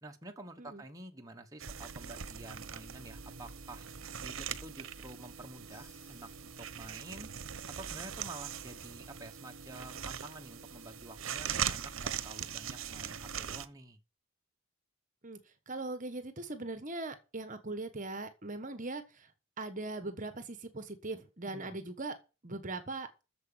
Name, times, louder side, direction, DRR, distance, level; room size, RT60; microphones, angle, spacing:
voice 1, 0.0-3.9 4.1-7.3 7.8-14.0 21.5-21.8, right 2 dB, 15° right, 1.3 m, -49 dB
sound 1, 1.6-13.7, right 8 dB, 70° right, 0.9 m, -41 dB
Crash cymbal, 5.7-7.4, left 2 dB, 35° left, 4.7 m, -66 dB
voice 2, 15.2-19.3 19.6-22.1 22.4-23.1, right 2 dB, 40° right, 1.3 m, -40 dB
9.1 x 7.1 x 8.7 m
head